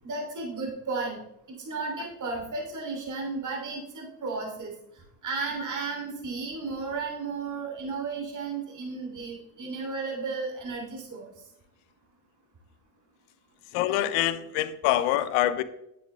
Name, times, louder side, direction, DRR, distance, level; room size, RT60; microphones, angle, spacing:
voice 1, 0.0-1.2 1.5-4.7 5.2-11.3, right 4 dB, 40° right, -1 dB, 3.3 m, -34 dB
voice 2, 13.7-15.6, left 13 dB, 80° left, 14 dB, 0.8 m, -25 dB
10.5 x 7.7 x 3.4 m, 0.82 s
hypercardioid pair, 70°, 48 cm